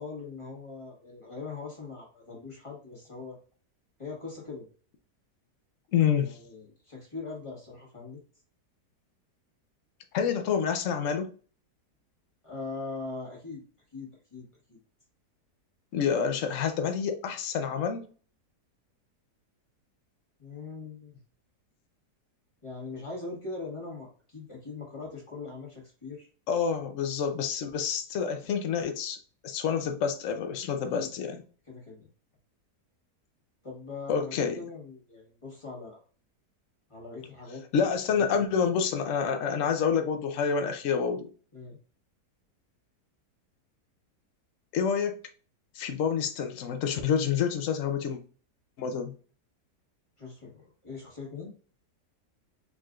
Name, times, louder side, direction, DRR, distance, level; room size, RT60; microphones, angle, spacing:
voice 1, 0.0-3.4 4.0-4.7 6.2-8.2 12.4-13.6 13.9-14.8 20.4-21.2 22.6-26.3 30.9-31.1 31.6-32.1 33.6-36.0 36.9-37.6 38.1-38.7 41.5-41.8 50.2-51.5, left 3 dB, 20° left, 1.6 m, -41 dB
voice 2, 5.9-6.4 10.1-11.3 15.9-18.1 26.5-29.2 29.4-31.4 34.1-34.6 37.7-41.3 44.7-45.2 45.8-48.2 48.8-49.1, left 7 dB, 60° left, 0.9 m, -28 dB
4.6 x 3.9 x 2.4 m
omnidirectional pair, 1.8 m